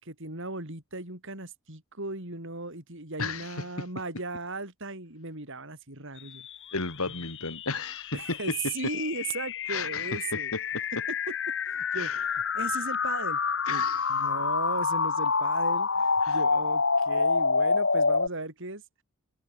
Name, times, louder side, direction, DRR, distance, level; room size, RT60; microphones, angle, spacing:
voice 1, 0.0-6.5 8.1-10.5 11.1-11.3 11.6-13.4 13.7-13.8 14.1-18.8, right 3 dB, 60° right, 7.3 m, -37 dB
voice 2, 3.2-3.9 6.7-8.4 9.7-10.6 12.0-12.2 13.7-14.0 16.2-16.4, left 3 dB, 80° left, 2.9 m, -34 dB
sound 1, 6.4-18.3, left 4 dB, 60° left, 7.1 m, -28 dB
head